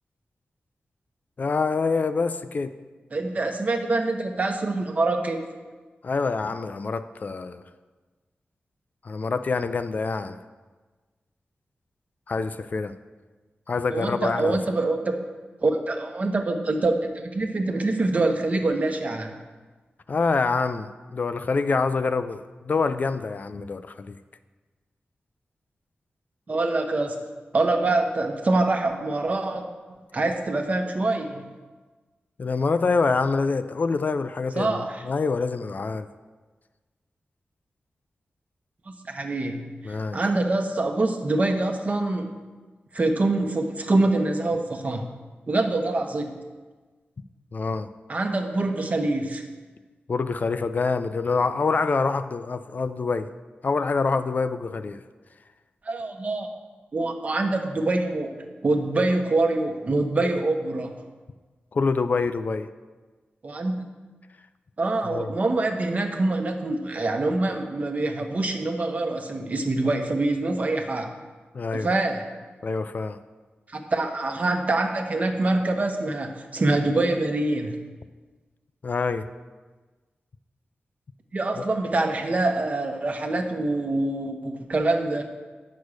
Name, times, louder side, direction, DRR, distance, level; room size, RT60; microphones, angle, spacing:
voice 1, 1.4-2.8 6.0-7.6 9.0-10.4 12.3-12.9 13.7-14.6 20.1-20.9 21.1-24.2 32.4-36.1 39.8-40.2 47.5-47.9 50.1-53.3 53.6-55.0 61.7-62.7 65.0-65.3 71.5-71.9 72.6-73.2 78.8-79.3, left 4 dB, 50° left, 11 dB, 0.4 m, -26 dB
voice 2, 3.1-5.4 13.9-15.2 15.6-19.4 26.5-27.3 27.5-29.7 30.1-31.4 34.6-35.0 38.9-42.3 42.9-45.0 45.5-46.3 48.1-49.4 55.8-56.5 56.9-58.4 58.6-60.9 63.4-63.8 64.8-71.1 71.7-72.4 73.7-77.8 81.3-85.2, right 2 dB, 40° right, 4 dB, 1.0 m, -25 dB
8.5 x 6.3 x 6.4 m, 1.3 s
wide cardioid pair, 115°, 4 cm